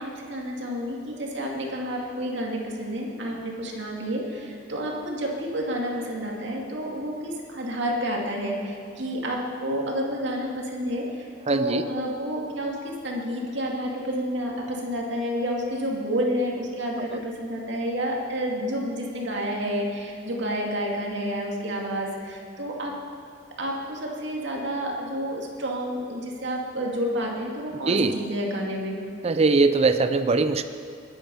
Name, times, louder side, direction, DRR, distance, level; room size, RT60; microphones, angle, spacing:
voice 1, 0.0-23.0 23.6-29.0, equal, 65° right, -1 dB, 2.6 m, -30 dB
voice 2, 11.5-11.8 17.1-17.2 27.9-28.2 29.2-30.6, right 3 dB, 35° right, 10 dB, 0.4 m, -21 dB
22.0 x 9.6 x 5.6 m, 2.3 s
head